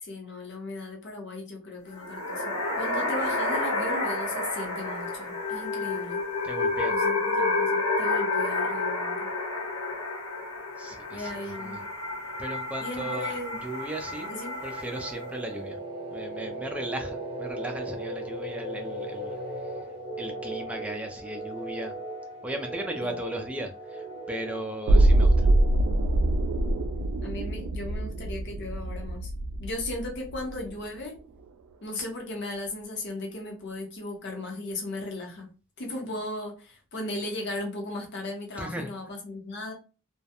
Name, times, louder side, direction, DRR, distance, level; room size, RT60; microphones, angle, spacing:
voice 1, 0.0-6.2 6.9-9.3 11.1-11.8 12.8-13.6 14.3-14.6 23.0-23.1 27.2-29.3 29.6-31.2 31.8-35.5 35.8-39.7, left 2 dB, 50° left, 1 dB, 0.7 m, -37 dB
sound 1, 1.9-15.3, left 2 dB, 80° left, 1.1 m, -30 dB
voice 2, 6.4-6.9 10.8-11.3 11.6-11.8 12.4-13.3 13.6-14.3 14.6-15.8 16.1-19.4 20.2-21.9 22.4-25.5 38.6-38.9, right 1 dB, 5° right, 3 dB, 0.3 m, -36 dB
sound 2, 12.8-27.3, right 1 dB, 25° right, 0.8 m, -38 dB
sound 3, 24.9-30.8 31.2-31.3, right 1 dB, 85° right, 0.3 m, -24 dB
2.3 x 2.0 x 2.8 m, 0.34 s
head